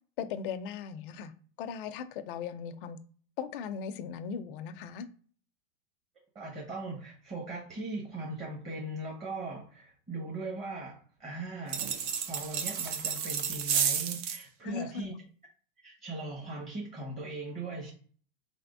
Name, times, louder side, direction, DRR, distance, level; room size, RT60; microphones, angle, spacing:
voice 1, 0.2-1.3 1.6-3.0 3.4-5.1 14.6-15.1, left 7 dB, 65° left, 11 dB, 0.6 m, -38 dB
voice 2, 6.3-12.0 12.3-15.2 15.8-17.9, right 2 dB, 20° right, -2 dB, 1.1 m, -39 dB
sound 1, 11.7-14.4, right 7 dB, 55° right, 0.7 m, -31 dB
3.9 x 3.4 x 2.6 m, 0.43 s
supercardioid pair, 125°, 29 cm